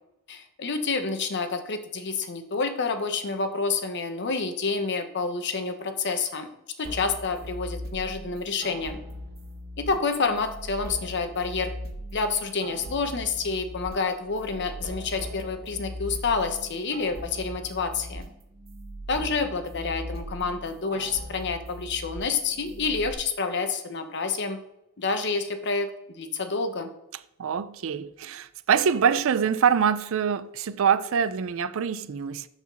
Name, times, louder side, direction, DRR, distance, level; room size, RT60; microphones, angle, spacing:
voice 1, 0.3-6.5 6.8-9.0 9.8-11.7 12.1-18.2 19.1-24.6 25.0-26.9, left 4 dB, 55° left, 0.9 m, -28 dB
sound 1, 6.8-23.1, equal, 45° right, 0.9 m, -40 dB
voice 2, 27.4-32.5, right 7 dB, 65° right, 0.4 m, -24 dB
7.0 x 4.2 x 6.2 m
head